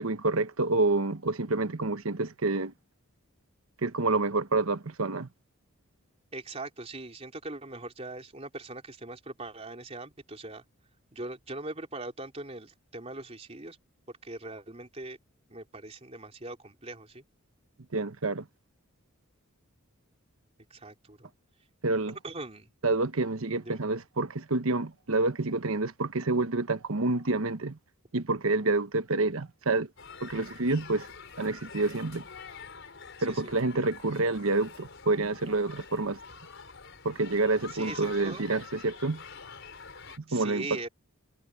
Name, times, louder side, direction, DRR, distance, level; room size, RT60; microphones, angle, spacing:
voice 1, 0.0-2.7 3.8-5.3 17.9-18.5 21.8-22.1 22.8-27.8 28.1-29.9 30.2-31.1 31.4-32.2 33.2-36.2 37.0-39.2 40.3-40.9, right 3 dB, 75° right, 1.1 m, -28 dB
voice 2, 6.3-10.6 11.1-13.8 14.1-15.2 15.5-17.2 20.7-21.3 22.2-22.7 23.6-23.8 33.3-33.5 37.7-38.4 40.3-40.9, right 2 dB, 30° right, 3.5 m, -41 dB
sound 1, 30.0-40.2, left 5 dB, 60° left, 5.5 m, -47 dB
head